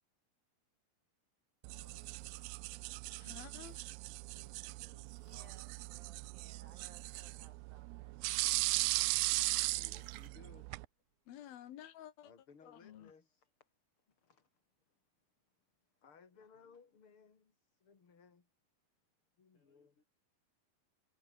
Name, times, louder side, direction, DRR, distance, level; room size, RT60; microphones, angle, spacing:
sound 1, 1.6-10.9, right 24 dB, 90° right, 2.4 m, -38 dB
voice 1, 1.7-2.6 3.2-3.3 4.3-5.6 9.8-10.7 12.2-13.7 14.1-14.6 14.9-15.0 15.9-18.5 19.4-19.9, left 5 dB, 35° left, 3.8 m, -63 dB
sound 2, 1.8-11.6, right 3 dB, 25° right, 3.5 m, -74 dB
voice 2, 3.2-3.9 11.3-12.3 12.6-13.1, left 11 dB, 80° left, 3.5 m, -52 dB
voice 3, 4.2-4.7 6.7-7.4 16.3-16.8 19.5-20.0, left 3 dB, 55° left, 9.0 m, -77 dB
voice 4, 5.2-8.2, right 6 dB, 70° right, 6.3 m, -63 dB
omnidirectional pair, 4.3 m